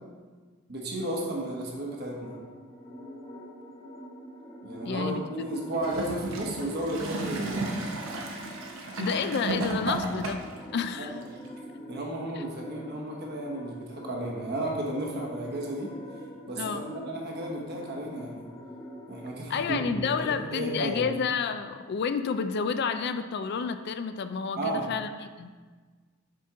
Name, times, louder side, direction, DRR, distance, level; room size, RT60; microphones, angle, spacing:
voice 1, 0.7-2.3 4.6-7.7 11.0-11.2 11.9-15.9 16.5-18.5 19.1-21.1 24.6-24.8, right 1 dB, 55° right, -1 dB, 1.2 m, -33 dB
sound 1, 2.2-20.9, equal, 30° left, 1.2 m, -44 dB
voice 2, 4.8-5.2 9.0-10.4 10.7-11.2 11.9-12.0 12.4-12.5 16.6-16.9 19.5-25.5, left 6 dB, 55° left, 10 dB, 0.3 m, -30 dB
Gurgling / Toilet flush, 5.7-10.6 11.4-11.5, right 2 dB, 85° right, 0.9 m, -33 dB
7.5 x 4.3 x 3.7 m, 1.5 s
head